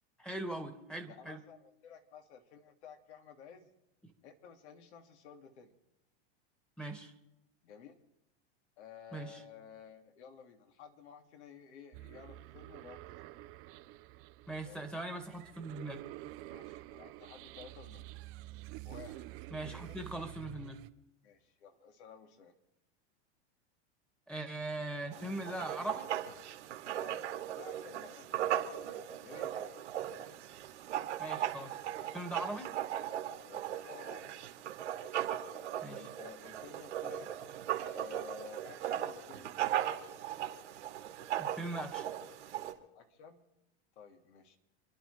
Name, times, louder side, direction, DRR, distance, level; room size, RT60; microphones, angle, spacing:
voice 1, 0.2-1.4 4.0-4.1 6.8-7.1 9.1-9.4 14.5-16.0 19.5-20.8 24.3-26.1 31.2-31.8 32.1-32.7 35.8-36.1 41.4-42.1, right 2 dB, ahead, 3 dB, 1.8 m, -40 dB
voice 2, 1.1-3.7 4.2-5.7 7.6-8.0 8.8-13.3 14.6-15.0 16.4-18.1 18.8-19.3 19.6-20.0 21.2-22.5 27.0-29.8 33.4-34.5 35.9-37.4 37.9-39.6 42.9-43.4 44.0-44.6, left 6 dB, 75° left, 4 dB, 2.5 m, -53 dB
sound 1, 11.9-20.9, right 17 dB, 40° right, 0.7 m, -49 dB
Writing, 25.1-42.7, right 11 dB, 85° right, 2.4 m, -38 dB
30.0 x 11.5 x 3.4 m, 0.91 s
hypercardioid pair, 120°, 34 cm